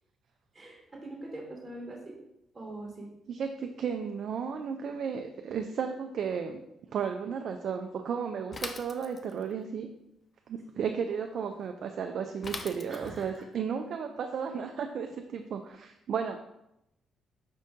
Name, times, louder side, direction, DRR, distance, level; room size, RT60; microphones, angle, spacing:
voice 1, 0.5-2.2 2.5-3.1 12.9-13.4, right 2 dB, 25° right, -3 dB, 1.1 m, -43 dB
voice 2, 3.3-6.6 6.9-9.9 10.5-16.4, right 6 dB, 65° right, 5 dB, 0.3 m, -34 dB
Bicycle / Mechanisms, 8.5-9.5 12.4-13.4, left 3 dB, 35° left, 0.4 m, -40 dB
5.3 x 2.6 x 3.6 m, 0.85 s
cardioid pair, 90°, 0 cm